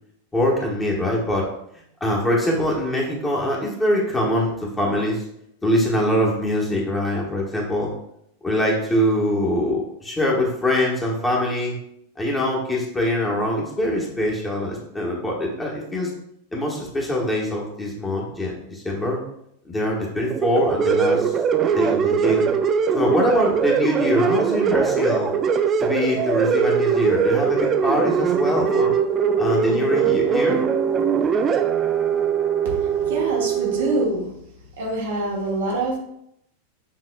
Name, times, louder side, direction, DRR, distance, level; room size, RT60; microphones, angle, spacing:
voice 1, 0.3-1.4 2.0-5.2 5.6-7.9 8.4-11.8 12.2-16.1 16.5-19.2 19.6-21.3 21.7-22.5 22.9-25.3 25.8-28.9 29.4-30.6, left 1 dB, 10° left, -3 dB, 1.3 m, -23 dB
sound 1, 20.3-34.0, right 7 dB, 25° right, 0.3 m, -21 dB
voice 2, 32.8-34.3 34.8-36.0, right 2 dB, 60° right, -1 dB, 1.1 m, -25 dB
7.5 x 3.0 x 2.3 m, 0.75 s
figure-of-eight pair, 90°, 0 cm